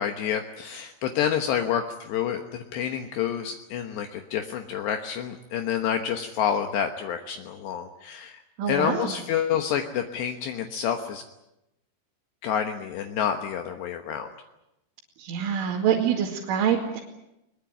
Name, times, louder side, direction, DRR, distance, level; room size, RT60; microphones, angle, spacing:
voice 1, 0.0-8.4 8.7-11.2 12.4-14.3, left 8 dB, 70° left, 5 dB, 3.2 m, -28 dB
voice 2, 8.6-9.1 15.2-17.0, right 8 dB, 90° right, -2 dB, 4.8 m, -25 dB
22.0 x 21.5 x 9.2 m, 0.89 s
omnidirectional pair, 5.4 m